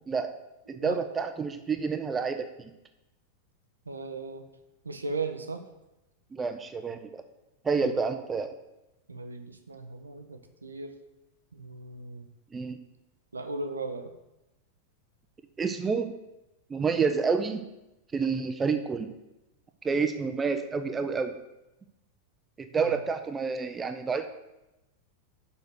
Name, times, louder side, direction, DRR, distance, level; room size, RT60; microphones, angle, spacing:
voice 1, 0.7-2.7 6.3-7.2 7.6-8.6 12.5-12.8 15.6-16.1 16.7-17.6 18.1-19.2 19.8-21.4 22.6-24.3, right 5 dB, 15° right, 8 dB, 0.6 m, -29 dB
voice 2, 3.9-4.4 4.8-5.6 7.8-7.9 9.1-10.9 11.5-12.3 13.3-14.1 22.8-23.0, right 3 dB, 80° right, 6 dB, 0.7 m, -37 dB
6.7 x 5.1 x 6.2 m, 0.95 s
figure-of-eight pair, 90°, 0 cm